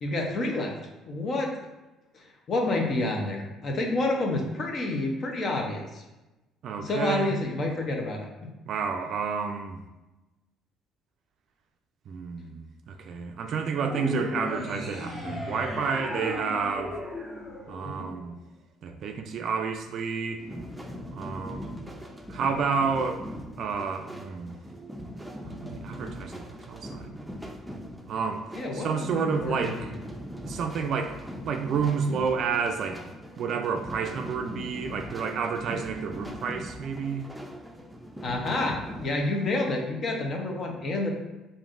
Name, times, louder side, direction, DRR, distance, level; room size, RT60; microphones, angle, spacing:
voice 1, 0.0-0.7 1.0-1.5 2.1-6.0 6.8-8.3 18.0-18.1 28.5-29.9 38.2-41.1, left 2 dB, 50° left, 1 dB, 0.8 m, -29 dB
voice 2, 6.6-7.3 8.7-9.8 12.1-17.0 17.7-18.4 18.8-20.4 21.1-21.7 22.3-23.3 23.6-24.6 25.4-27.2 28.1-28.4 28.7-29.9 30.4-37.2, right 5 dB, 60° right, 5 dB, 0.3 m, -30 dB
sound 1, 13.8-18.3, left 1 dB, 30° left, 1.1 m, -35 dB
sound 2, 20.4-39.1, equal, 5° right, 0.5 m, -40 dB
5.1 x 2.7 x 2.5 m, 1.0 s
supercardioid pair, 65°, 0 cm